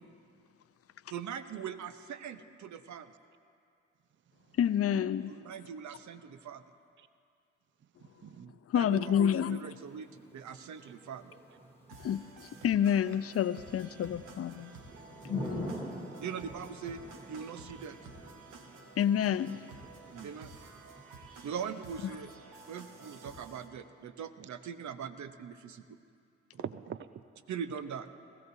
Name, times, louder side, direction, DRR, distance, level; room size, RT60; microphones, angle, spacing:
voice 1, 1.1-3.1 5.3-6.6 8.7-11.4 16.2-17.0 17.3-18.0 20.2-20.5 21.4-22.3 22.7-22.8 23.2-25.8 27.5-28.1, right 7 dB, 60° right, 10 dB, 0.8 m, -41 dB
voice 2, 4.6-5.3 8.7-9.6 12.0-14.7 15.2-15.7 19.0-19.6, left 9 dB, 45° left, 15 dB, 0.6 m, -29 dB
voice 3, 8.0-8.6 10.8-10.9 19.5-19.6 20.1-20.3 24.4-24.5 26.6-27.2, right 8 dB, 35° right, 13 dB, 0.5 m, -45 dB
Thunder / Rain, 9.4-22.2, right 1 dB, 15° right, 3.3 m, -48 dB
sound 1, 11.9-23.7, right 3 dB, 75° right, 1.2 m, -52 dB
20.0 x 14.5 x 2.7 m, 2.4 s
hypercardioid pair, 40°, 33 cm